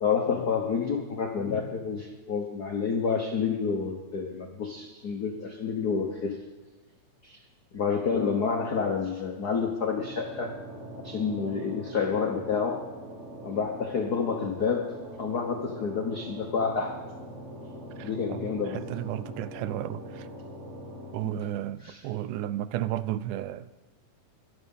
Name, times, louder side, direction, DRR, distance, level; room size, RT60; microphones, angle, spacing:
voice 1, 0.0-6.4 7.2-7.4 7.7-10.5 11.0-12.9 13.4-17.0 18.0-18.8 21.2-21.3 21.8-22.0, left 5 dB, 75° left, 0.9 m, -29 dB
sound 1, 9.9-21.1, equal, 30° right, 1.7 m, -42 dB
voice 2, 18.0-20.3 21.1-23.7, right 13 dB, 85° right, 2.1 m, -33 dB
23.0 x 7.8 x 5.5 m
omnidirectional pair, 3.5 m